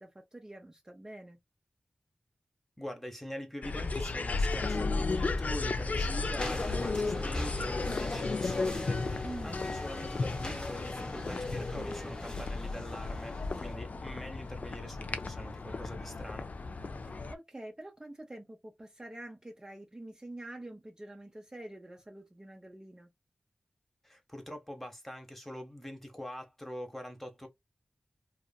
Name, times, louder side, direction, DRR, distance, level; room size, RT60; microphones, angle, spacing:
voice 1, 0.0-1.4 9.2-9.7 17.0-23.1, right 1 dB, 25° right, 0.7 m, -46 dB
voice 2, 2.8-16.5 24.0-27.5, left 1 dB, 10° left, 0.9 m, -44 dB
sound 1, 3.6-17.3, left 3 dB, 60° left, 0.4 m, -34 dB
sound 2, 6.4-13.7, left 1 dB, 30° left, 0.9 m, -41 dB
2.5 x 2.5 x 2.3 m
wide cardioid pair, 60°, 3 cm